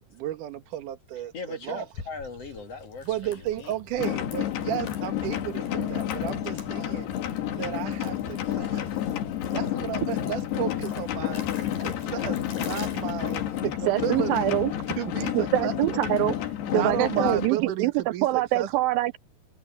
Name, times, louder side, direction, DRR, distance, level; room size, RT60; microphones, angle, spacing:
voice 1, 0.0-1.9 3.0-7.2 7.5-8.9 9.5-11.5 11.8-13.4 13.8-14.5 15.0-16.0 16.7-18.7, right 12 dB, 60° right, 2.7 m, -33 dB
voice 2, 1.3-3.7, left 4 dB, 45° left, 2.6 m, -39 dB
sound 1, 1.9-14.0, left 5 dB, 60° left, 5.9 m, -46 dB
sound 2, 4.0-17.5, left 11 dB, 80° left, 4.1 m, -30 dB
voice 3, 13.9-14.7 15.3-16.3 16.7-17.9 18.2-19.2, right 15 dB, 80° right, 2.1 m, -24 dB
omnidirectional pair, 4.6 m